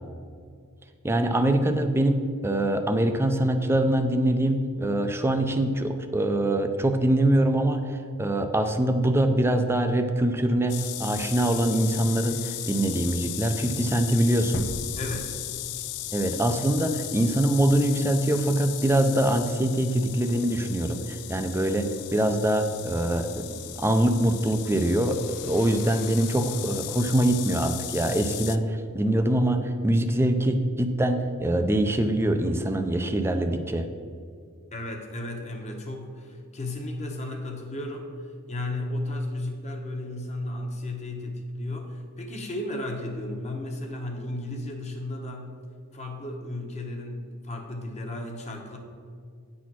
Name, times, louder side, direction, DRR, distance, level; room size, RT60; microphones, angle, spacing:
voice 1, 1.0-14.7 16.1-33.9, right 1 dB, 10° right, 7 dB, 0.4 m, -24 dB
sound 1, 10.7-28.6, left 14 dB, 85° left, 0.4 m, -36 dB
sound 2, 14.5-16.4, left 1 dB, 50° left, 0.7 m, -38 dB
voice 2, 15.0-15.4 34.7-38.1 38.5-45.6 45.9-48.8, left 1 dB, 30° left, 2 dB, 1.0 m, -34 dB
9.4 x 4.2 x 6.1 m, 2.2 s
head